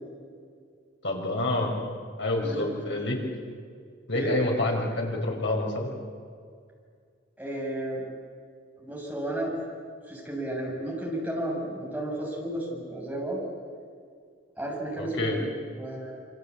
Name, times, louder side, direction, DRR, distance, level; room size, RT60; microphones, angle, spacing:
voice 1, 1.0-1.7 2.2-3.2 4.1-5.9 15.0-15.4, left 2 dB, 65° left, 0 dB, 5.7 m, -28 dB
voice 2, 2.4-3.0 4.1-4.4 7.4-8.0 8.8-9.5 10.1-13.4 14.6-15.5 15.7-16.2, right 1 dB, 10° right, -3 dB, 7.4 m, -33 dB
27.5 x 25.0 x 8.6 m, 2.2 s
head